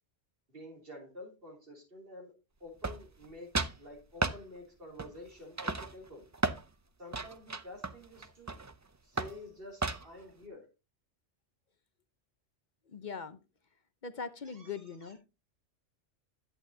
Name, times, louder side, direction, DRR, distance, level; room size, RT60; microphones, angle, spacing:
voice 1, 0.5-2.3 2.6-6.3 7.0-8.6 9.0-10.7 14.4-15.2, left 1 dB, 50° right, 1 dB, 3.3 m, -49 dB
sound 1, 2.8-3.3 3.5-3.8 4.2-4.4 5.0-5.3 5.6-6.6 7.1-8.7 9.2-9.4 9.8-10.2, right 3 dB, 25° right, 0.3 m, -34 dB
voice 2, 12.9-13.4 14.0-15.2, left 5 dB, 45° left, 11 dB, 0.9 m, -41 dB
11.5 x 8.6 x 2.8 m, 0.27 s
omnidirectional pair, 1.2 m